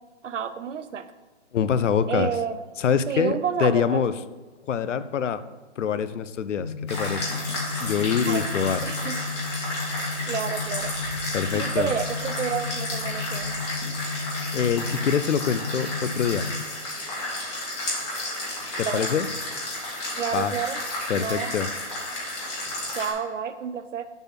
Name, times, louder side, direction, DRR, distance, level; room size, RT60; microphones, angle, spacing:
voice 1, 0.2-1.1 2.1-2.6 3.1-4.0 8.3-8.5 8.8-9.3 10.3-11.0 11.5-13.6 18.8-19.1 20.2-20.8 21.1-21.5 22.9-24.1, right 7 dB, 90° right, 12 dB, 0.7 m, -30 dB
voice 2, 1.5-2.3 2.8-4.1 4.6-5.4 5.8-7.3 7.8-8.8 11.3-11.9 14.5-16.5 18.8-19.3 20.3-20.5 21.1-21.7, left 7 dB, 90° left, 13 dB, 0.6 m, -25 dB
sound 1, 6.6-16.6, left 4 dB, 20° right, 2.0 m, -33 dB
sound 2, 6.9-23.1, left 1 dB, 25° left, 1.8 m, -32 dB
6.9 x 4.2 x 5.7 m, 1.3 s
hypercardioid pair, 170°, 36 cm